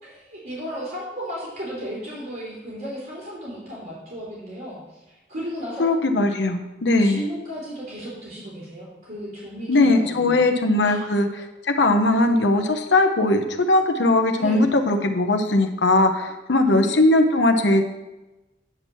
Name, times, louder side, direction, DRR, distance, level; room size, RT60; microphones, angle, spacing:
voice 1, 0.0-5.0 5.3-5.9 7.0-10.5 10.8-11.0 14.4-14.7 16.6-17.8, equal, 55° right, -7 dB, 3.4 m, -35 dB
voice 2, 5.8-7.2 9.7-11.3 11.6-17.8, left 2 dB, 80° left, 5 dB, 0.9 m, -19 dB
9.5 x 4.5 x 7.1 m, 1.0 s
head